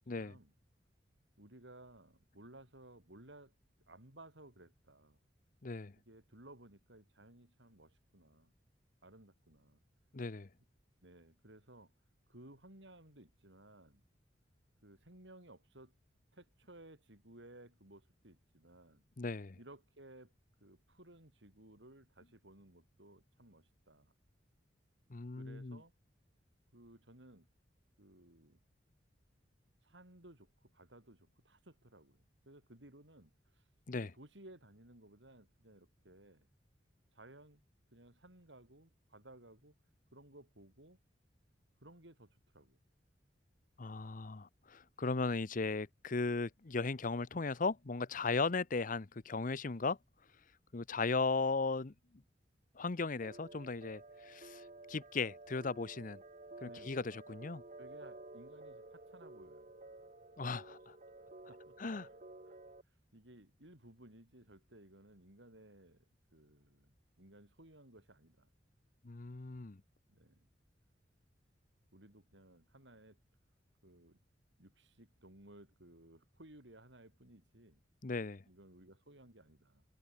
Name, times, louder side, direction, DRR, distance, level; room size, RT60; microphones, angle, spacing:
voice 1, 0.2-0.5 1.4-3.5 3.9-5.2 6.0-8.5 9.0-9.8 11.0-11.9 12.3-14.0 14.8-15.9 16.3-19.0 19.6-20.3 20.6-24.1 25.4-25.9 26.7-27.5 28.0-28.6 29.8-33.7 34.0-36.5 37.1-37.6 37.9-39.7 40.1-41.0 41.8-42.8 48.2-48.4 56.6-57.1 57.8-59.7 61.5-62.1 62.5-62.6 62.8-66.9 67.2-68.5 70.1-70.5 71.9-73.2 73.8-74.2 74.6-77.8 78.4-79.8, right 1 dB, 80° right, 6.8 m, -59 dB
voice 2, 5.6-5.9 10.1-10.5 19.2-19.6 25.1-25.8 33.9-34.1 43.8-50.0 50.7-51.9 52.7-56.2 56.6-57.6 60.4-61.0 61.8-62.1 69.0-69.8 78.0-78.4, left 4 dB, 45° left, 0.8 m, -37 dB
sound 1, 53.2-62.8, right 2 dB, 40° right, 1.9 m, -53 dB
head